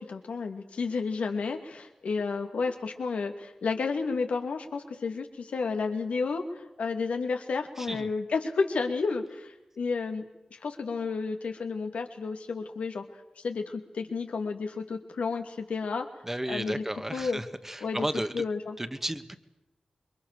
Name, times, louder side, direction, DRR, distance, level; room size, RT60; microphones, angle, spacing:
voice 1, 0.0-10.2 10.5-13.0 13.4-16.1 16.5-16.8 17.1-17.4 17.8-18.1 18.3-18.8, left 4 dB, 85° left, 5 dB, 2.5 m, -31 dB
voice 2, 7.8-8.1 16.2-18.4 18.8-19.4, right 1 dB, 15° right, 10 dB, 1.8 m, -33 dB
26.5 x 22.5 x 6.9 m, 0.95 s
cardioid pair, 40°, 2 cm